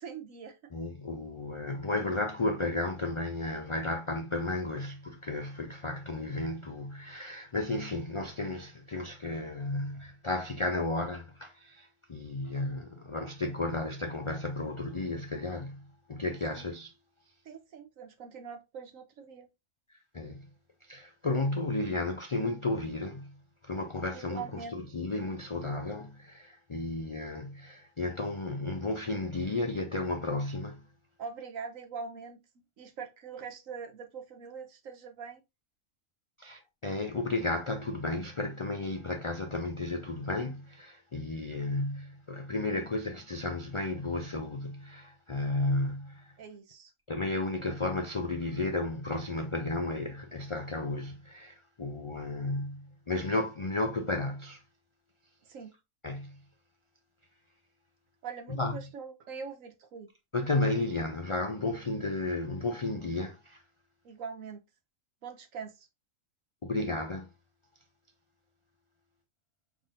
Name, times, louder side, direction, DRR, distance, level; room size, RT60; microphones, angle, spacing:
voice 1, 0.0-0.6 16.5-16.7 17.4-19.5 24.1-24.8 31.2-35.4 46.4-46.9 55.4-55.7 58.2-60.1 64.0-64.6 65.2-65.9, right 6 dB, 75° right, 1.4 m, -43 dB
voice 2, 0.7-15.8 16.1-16.9 20.1-20.5 20.9-23.3 23.6-30.8 36.4-46.3 47.1-54.6 56.0-56.4 58.6-58.8 60.3-63.6 66.6-67.3, left 2 dB, 55° left, 0.3 m, -33 dB
5.6 x 3.5 x 2.5 m
omnidirectional pair, 1.4 m